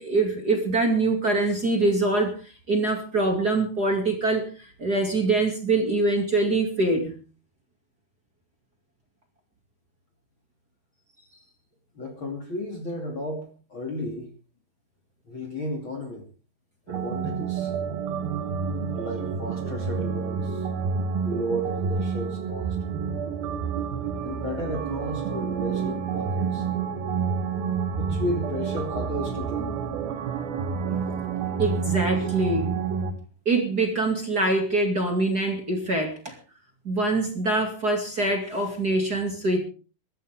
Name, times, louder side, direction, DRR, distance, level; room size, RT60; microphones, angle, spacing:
voice 1, 0.0-7.2 31.6-32.7 33.5-36.4 36.8-39.6, right 2 dB, 30° right, 3 dB, 2.5 m, -24 dB
voice 2, 11.9-14.3 15.3-16.2 16.9-17.7 18.9-20.7 21.2-22.8 24.2-26.7 28.0-29.8 32.2-32.3, equal, 35° left, 3 dB, 3.0 m, -33 dB
sound 1, 16.9-33.1, right 6 dB, 85° right, 3.4 m, -29 dB
23.0 x 13.0 x 3.6 m, 0.36 s
omnidirectional pair, 4.2 m